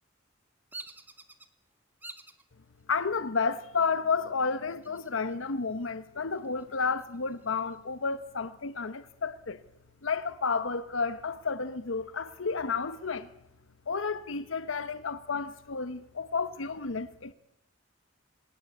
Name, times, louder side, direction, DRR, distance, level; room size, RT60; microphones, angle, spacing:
Bird vocalization bird call bird song, 0.7-1.5 2.0-2.4 3.0-3.5 4.7-5.5 5.8-5.9 6.4-7.8, right 2 dB, 10° right, 1.6 m, -48 dB
voice 1, 2.9-9.6 10.0-13.3 13.9-17.3, left 5 dB, 75° left, 0.9 m, -31 dB
25.0 x 19.0 x 8.5 m
head